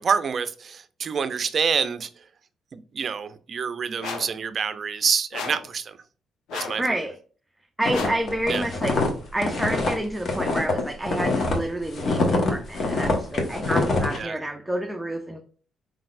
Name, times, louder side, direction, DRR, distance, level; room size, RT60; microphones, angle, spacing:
voice 1, 0.0-2.1 2.7-6.0 6.5-6.8 8.5-8.6 14.1-14.3, right 6 dB, 50° right, 0.5 m, -27 dB
sound 1, 4.0-4.4 5.3-5.7 6.5-6.9 7.9-8.3, left 6 dB, 85° left, 0.7 m, -34 dB
voice 2, 6.8-7.2 7.8-9.0 9.3-15.4, right 1 dB, 10° right, 0.6 m, -29 dB
sound 2, 7.8-11.6 11.9-14.2, left 2 dB, 50° left, 1.3 m, -24 dB
4.8 x 3.9 x 2.5 m
cardioid pair, 90°, 0 cm